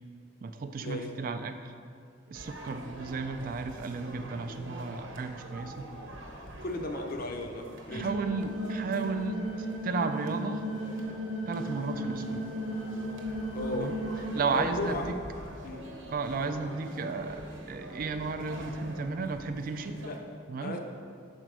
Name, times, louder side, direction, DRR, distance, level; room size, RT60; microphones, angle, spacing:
voice 1, 0.4-1.7 2.3-5.8 7.9-9.4 9.8-10.6 11.5-12.5 13.7-14.0 14.3-15.1 16.1-20.0 20.5-20.7, right 4 dB, 45° right, 8 dB, 0.3 m, -33 dB
sound 1, 2.3-20.2, right 1 dB, 75° right, 0.8 m, -45 dB
voice 2, 6.6-8.1 13.5-14.0 14.3-15.0 15.6-15.9 20.0-20.2 20.6-20.8, left 2 dB, 45° left, 4 dB, 0.6 m, -35 dB
sound 2, 7.9-14.4, equal, 85° left, 1.6 m, -35 dB
5.0 x 4.4 x 6.1 m, 2.3 s
head